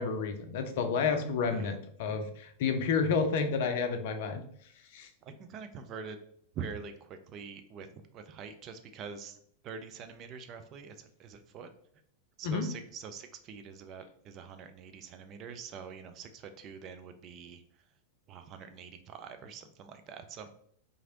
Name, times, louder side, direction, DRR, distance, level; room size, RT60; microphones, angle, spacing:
voice 1, 0.0-4.4 4.9-5.1 12.4-12.7, left 5 dB, 55° left, 6 dB, 0.4 m, -30 dB
voice 2, 5.2-6.2 6.5-7.9 8.1-9.4 9.6-11.7 12.4-17.6 18.3-20.5, right 6 dB, 35° right, 8 dB, 0.4 m, -45 dB
2.9 x 2.5 x 2.8 m, 0.64 s
figure-of-eight pair, 95°, 0 cm